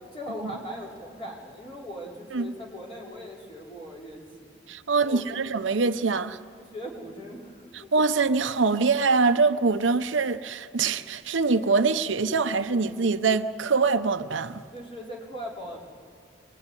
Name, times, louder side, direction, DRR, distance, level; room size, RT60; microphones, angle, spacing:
voice 1, 0.1-4.6 5.0-5.4 6.6-7.9 14.7-15.9, equal, 30° left, 4.5 m, -39 dB
voice 2, 4.7-6.4 7.9-14.6, right 4 dB, 75° right, 0.8 m, -24 dB
23.5 x 21.0 x 9.8 m
head